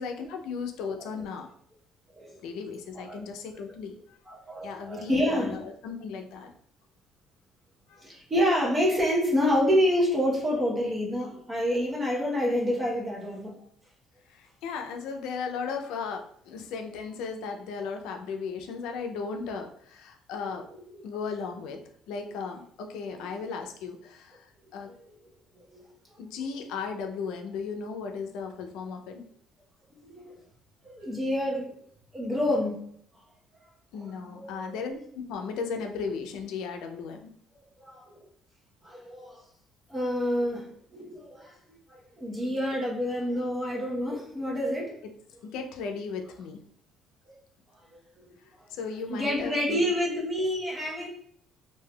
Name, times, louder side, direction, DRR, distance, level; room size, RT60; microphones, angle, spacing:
voice 1, 0.0-1.5 2.4-4.2 4.6-6.5 7.9-8.0 14.3-20.6 21.0-21.8 22.1-24.5 24.7-24.9 26.2-29.2 33.9-37.3 45.4-46.6 48.7-49.9, left 5 dB, 85° left, 4 dB, 0.4 m, -36 dB
voice 2, 4.3-5.6 8.0-13.6 20.7-21.0 23.1-23.4 25.1-25.2 25.5-25.8 26.1-26.2 30.0-30.3 30.8-31.8 32.1-32.8 33.9-34.8 37.0-37.1 37.8-38.2 38.8-39.4 39.9-41.6 41.9-45.0 47.3-47.4 47.9-48.3 49.1-51.1, equal, 20° right, -3 dB, 0.9 m, -28 dB
3.3 x 2.6 x 2.3 m, 0.65 s
cardioid pair, 125°, 0 cm